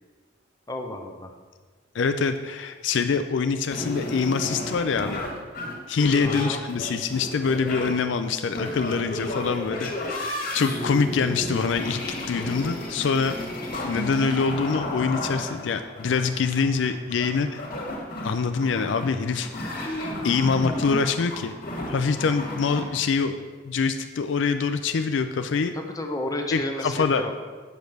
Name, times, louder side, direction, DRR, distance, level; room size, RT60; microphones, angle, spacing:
voice 1, 0.7-1.3 6.2-6.6 25.7-27.3, left 1 dB, 20° left, 3 dB, 0.8 m, -31 dB
voice 2, 1.9-5.3 5.9-13.4 13.8-17.6 18.2-19.9 20.2-21.5 21.9-25.7 26.5-27.2, left 5 dB, 70° left, 9 dB, 0.4 m, -25 dB
sound 1, 3.7-22.8, left 1 dB, 50° left, 1.8 m, -32 dB
7.9 x 5.2 x 5.9 m, 1.5 s
head